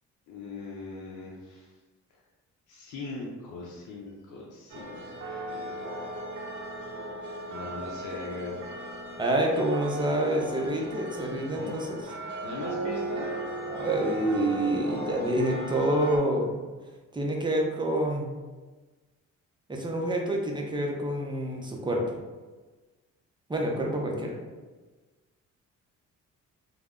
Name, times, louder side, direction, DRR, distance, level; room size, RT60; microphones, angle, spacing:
voice 1, 0.3-1.7 2.7-5.0 5.5-5.7 7.5-8.6 11.5-11.7 12.4-13.4, left 3 dB, 75° left, -4 dB, 0.6 m, -39 dB
sound 1, 4.7-16.2, right 1 dB, 70° right, 0.5 m, -37 dB
voice 2, 9.2-12.0 13.7-16.6 17.1-18.3 19.7-22.0 23.5-24.4, right 1 dB, 15° right, 0 dB, 0.5 m, -27 dB
2.2 x 2.0 x 3.5 m, 1.3 s
cardioid pair, 90°, 30 cm